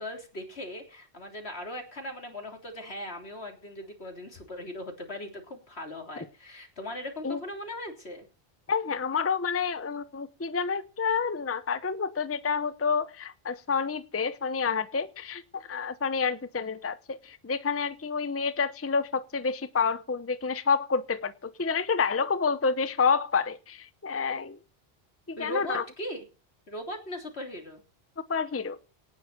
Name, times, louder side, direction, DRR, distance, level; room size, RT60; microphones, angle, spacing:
voice 1, 0.0-8.3 25.4-26.3 26.7-27.8, left 1 dB, 80° left, 3.7 m, -39 dB
voice 2, 8.7-24.6 25.3-25.8 28.3-28.8, left 5 dB, 15° left, 0.6 m, -29 dB
18.0 x 6.4 x 6.7 m
omnidirectional pair, 1.1 m